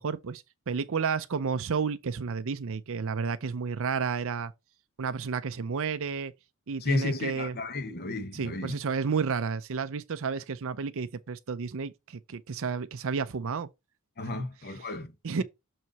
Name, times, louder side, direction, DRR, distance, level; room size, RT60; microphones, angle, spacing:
voice 1, 0.0-4.5 5.0-6.3 6.7-7.6 8.3-13.7 14.3-14.4 15.2-15.4, right 5 dB, 65° right, 0.6 m, -31 dB
voice 2, 6.8-8.8 14.2-15.1 15.4-15.5, left 2 dB, 45° left, 1.1 m, -33 dB
6.6 x 4.6 x 4.1 m
head